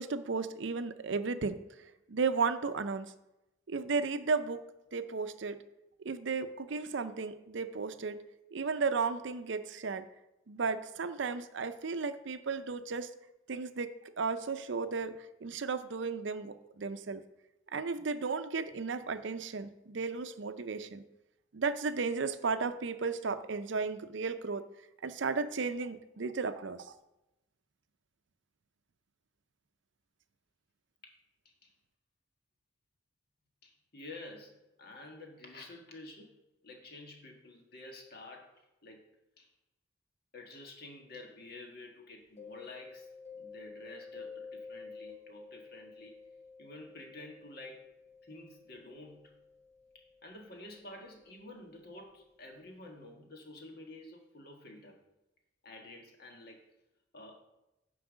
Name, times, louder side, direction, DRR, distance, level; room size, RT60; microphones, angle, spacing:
voice 1, 0.0-1.6 2.1-3.1 3.7-4.6 4.9-5.6 6.0-8.2 8.5-10.1 10.5-13.1 13.5-17.2 17.7-21.0 21.5-24.6 25.0-26.9, right 4 dB, 65° right, 11 dB, 0.5 m, -34 dB
voice 2, 33.6-36.3 36.6-39.1 39.4-39.5 40.3-43.1 43.3-46.2 46.6-47.9 48.2-49.3 49.9-55.0 55.6-56.6 57.1-57.4, left 2 dB, 50° left, 2 dB, 1.6 m, -50 dB
Mallet percussion, 42.4-51.9, left 5 dB, 35° left, 1.0 m, -51 dB
9.8 x 4.7 x 6.2 m, 0.94 s
head